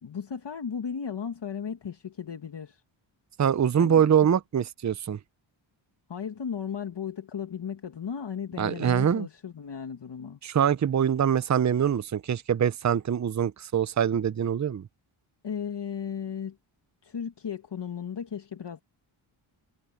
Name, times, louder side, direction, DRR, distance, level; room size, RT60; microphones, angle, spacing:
voice 1, 0.0-2.8 3.8-4.0 6.1-10.4 15.4-16.6 17.0-18.8, left 7 dB, 55° left, 1.9 m, -35 dB
voice 2, 3.4-5.2 8.6-9.3 10.4-14.9, right 8 dB, 35° right, 0.7 m, -24 dB
cardioid pair, 70°, 50 cm